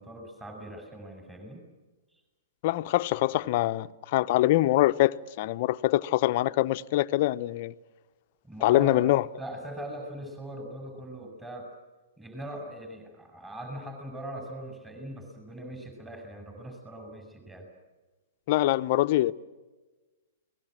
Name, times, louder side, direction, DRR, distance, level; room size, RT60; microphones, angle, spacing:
voice 1, 0.0-1.6 8.4-9.1 9.4-11.7 12.2-17.7, right 1 dB, 10° right, 5.8 m, -41 dB
voice 2, 2.6-7.7 8.6-9.3 18.5-19.3, left 16 dB, 50° left, 0.7 m, -24 dB
29.5 x 20.0 x 7.6 m
hypercardioid pair, 115°, 0 cm